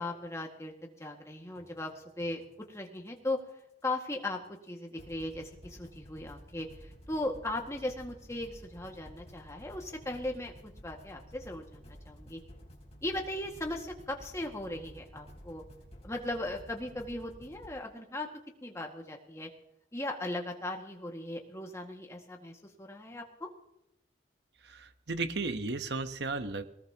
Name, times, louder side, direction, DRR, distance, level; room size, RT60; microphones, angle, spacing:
voice 1, 0.0-3.4 3.8-12.4 13.0-15.6 16.0-18.3 18.6-19.5 19.9-23.5, left 1 dB, 15° left, 2 dB, 1.9 m, -38 dB
sound 1, 1.6-2.8 5.0-17.7, equal, 35° left, 3.3 m, -52 dB
voice 2, 24.6-26.6, right 3 dB, 70° right, 10 dB, 1.0 m, -34 dB
20.0 x 19.5 x 2.9 m, 0.83 s
head